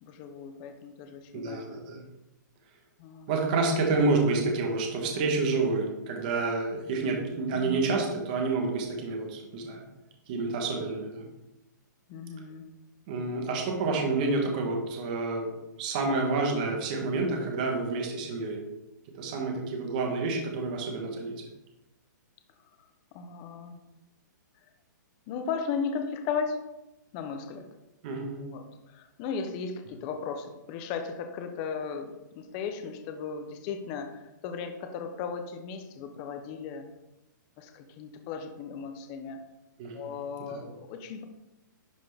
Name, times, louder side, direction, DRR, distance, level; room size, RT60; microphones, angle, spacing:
voice 1, 0.0-1.8 3.0-3.3 7.5-7.8 12.1-12.6 22.8-22.9 23.1-23.8 25.3-26.6 27.1-27.7 28.4-36.9 37.6-39.4 39.9-41.2, left 5 dB, 15° left, 6 dB, 0.4 m, -36 dB
voice 2, 1.3-2.0 3.3-9.8 10.3-11.2 13.1-15.5 15.8-18.6 19.2-21.3 28.0-28.4 39.8-40.1 40.5-40.6, right 3 dB, 25° right, 1 dB, 1.1 m, -29 dB
10.5 x 4.1 x 3.3 m, 0.97 s
hypercardioid pair, 180°, 10 cm